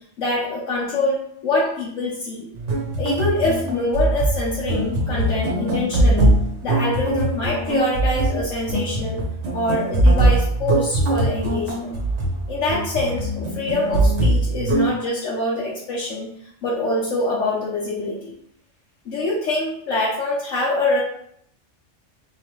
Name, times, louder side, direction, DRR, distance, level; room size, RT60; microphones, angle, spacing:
voice 1, 0.2-2.5 3.0-6.3 6.6-9.2 9.5-12.0 12.5-16.3 16.6-18.4 19.0-21.0, left 2 dB, 80° left, -5 dB, 1.3 m, -24 dB
sound 1, 2.6-14.9, right 1 dB, 70° right, 1.1 m, -21 dB
3.8 x 3.4 x 3.1 m, 0.67 s
omnidirectional pair, 1.3 m